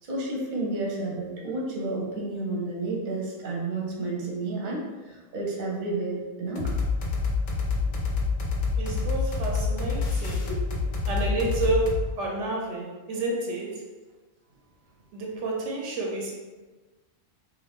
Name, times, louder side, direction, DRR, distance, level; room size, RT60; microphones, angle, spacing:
voice 1, 0.0-6.7 7.8-7.9 9.7-9.8 10.2-10.9, right 2 dB, 45° right, -3 dB, 0.8 m, -31 dB
sound 1, 6.6-12.1, left 4 dB, 70° left, 0.9 m, -27 dB
voice 2, 8.8-10.5 11.1-11.9 12.2-13.8 15.1-16.3, right 2 dB, 75° right, -1 dB, 0.9 m, -29 dB
2.7 x 2.5 x 3.4 m, 1.3 s
omnidirectional pair, 1.3 m